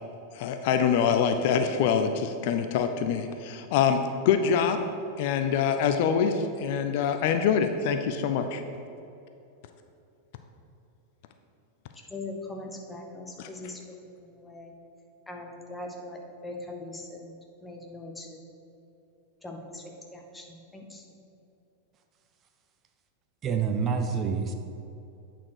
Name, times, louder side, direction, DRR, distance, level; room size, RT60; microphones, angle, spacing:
voice 1, 0.3-4.8 5.2-8.6, left 7 dB, 50° left, 7 dB, 0.4 m, -25 dB
voice 2, 12.1-14.7 15.3-18.4 19.4-21.2, left 2 dB, 10° left, 1 dB, 1.0 m, -41 dB
voice 3, 23.4-24.5, right 6 dB, 30° right, 6 dB, 0.5 m, -27 dB
8.5 x 4.4 x 4.7 m, 2.7 s
figure-of-eight pair, 90°, 0 cm